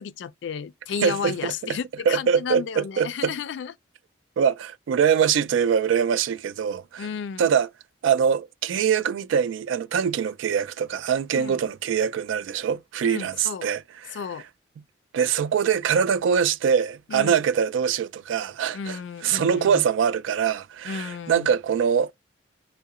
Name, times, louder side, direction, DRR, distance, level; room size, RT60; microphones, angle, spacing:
voice 1, 0.0-3.7 7.0-7.5 11.3-11.6 13.0-13.7 14.1-14.4 17.1-17.4 18.7-19.8 20.8-21.5, left 7 dB, 70° left, 0.3 m, -33 dB
voice 2, 1.0-1.5 2.1-3.3 4.4-7.1 7.4-7.7 8.0-14.2 15.1-22.1, right 7 dB, 85° right, 0.3 m, -23 dB
2.8 x 2.0 x 2.3 m
head